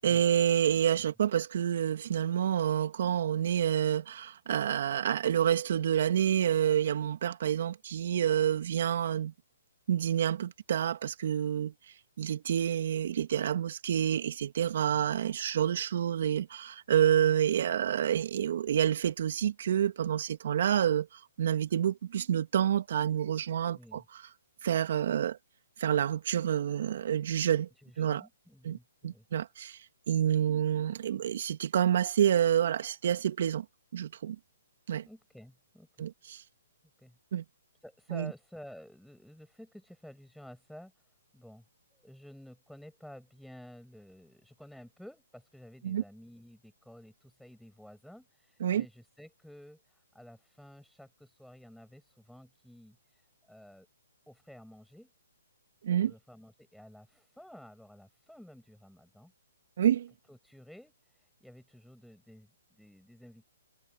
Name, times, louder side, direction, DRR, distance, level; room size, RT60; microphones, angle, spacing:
voice 1, 0.0-9.3 9.9-11.7 12.2-21.1 21.4-24.2 24.6-25.4 25.8-27.7 28.0-28.3 28.6-28.8 29.0-29.8 30.1-33.6 33.9-34.4 34.9-35.1 36.0-36.4 37.3-37.4 38.1-38.3 45.8-46.0 48.6-48.8 55.8-56.1 59.8-60.1, right 9 dB, 55° right, 2.6 m, -28 dB
voice 2, 23.7-24.1 27.8-29.2 35.1-36.1 37.0-37.2 37.8-40.9 41.3-41.6 41.9-53.9 54.3-55.1 56.0-59.3 60.3-63.5, equal, ahead, 7.2 m, -52 dB
hypercardioid pair, 140°, 0 cm